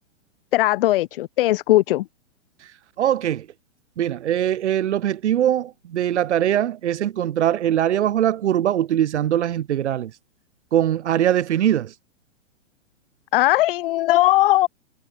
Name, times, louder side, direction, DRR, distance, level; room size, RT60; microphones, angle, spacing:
voice 1, 0.5-2.0 13.3-14.7, left 16 dB, 45° left, 0.9 m, -18 dB
voice 2, 3.0-3.5 4.0-10.1 10.7-11.9, right 11 dB, 60° right, 3.7 m, -21 dB
hypercardioid pair, 130°, 38 cm